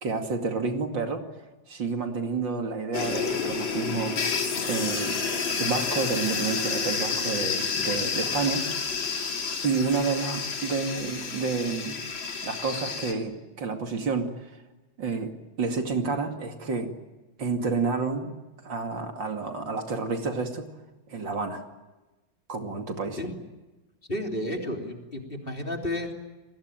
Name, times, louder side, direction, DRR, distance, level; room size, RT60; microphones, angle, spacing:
voice 1, 0.0-1.2 1.7-5.2 5.6-8.7 9.6-12.0 12.4-14.5 15.0-16.9 17.4-18.3 18.6-20.7 21.1-21.6 22.5-23.2, right 4 dB, 70° right, 5 dB, 3.1 m, -29 dB
sound 1, 2.9-13.1, left 5 dB, 85° left, 3.5 m, -30 dB
voice 2, 24.1-26.1, left 1 dB, 25° left, 2 dB, 3.5 m, -32 dB
29.0 x 20.5 x 9.1 m, 1.1 s
omnidirectional pair, 2.1 m